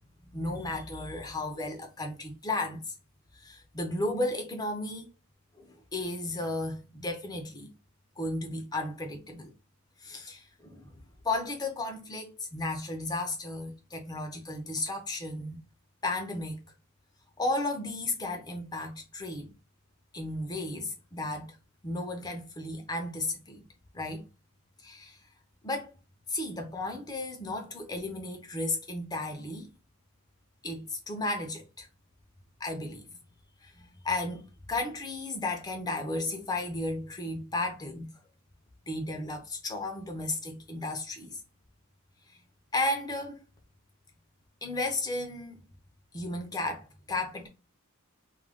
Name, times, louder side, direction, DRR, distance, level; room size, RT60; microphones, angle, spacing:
voice 1, 0.3-2.9 3.4-5.1 5.6-7.7 8.2-9.5 10.0-10.9 11.2-15.6 16.0-16.6 17.4-19.5 20.1-21.6 21.8-23.6 23.9-24.2 24.8-25.2 25.6-25.9 26.3-29.7 30.6-31.9 32.6-33.1 33.6-38.1 38.9-41.4 42.7-43.4 44.6-45.6 46.1-47.5, left 2 dB, 20° left, 0.5 m, -34 dB
2.4 x 2.2 x 3.3 m
head